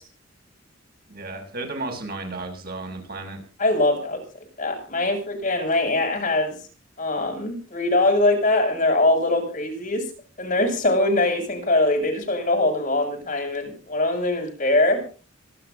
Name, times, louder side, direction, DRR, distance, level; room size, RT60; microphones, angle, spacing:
voice 1, 1.1-3.4, right 2 dB, 50° right, 4 dB, 6.7 m, -33 dB
voice 2, 3.6-4.2 4.6-6.6 7.0-10.1 10.4-15.1, left 2 dB, 40° left, 3 dB, 7.2 m, -22 dB
26.5 x 12.0 x 2.8 m, 0.37 s
head